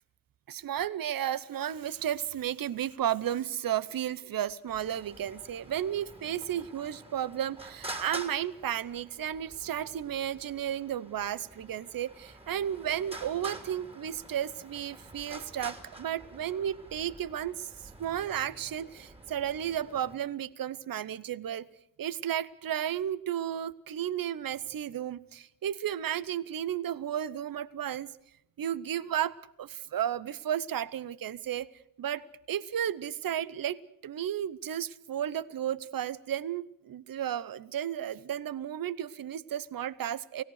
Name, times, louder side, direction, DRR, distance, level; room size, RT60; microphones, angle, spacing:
voice 1, 0.5-17.7 18.0-21.7 22.0-28.1 28.6-31.7 32.0-40.4, right 10 dB, 75° right, 19 dB, 0.8 m, -33 dB
Traffic noise roadway noise, 4.7-20.2, right 1 dB, 15° right, 3.0 m, -47 dB
29.5 x 17.5 x 6.4 m, 0.76 s
wide cardioid pair, 105°, 34 cm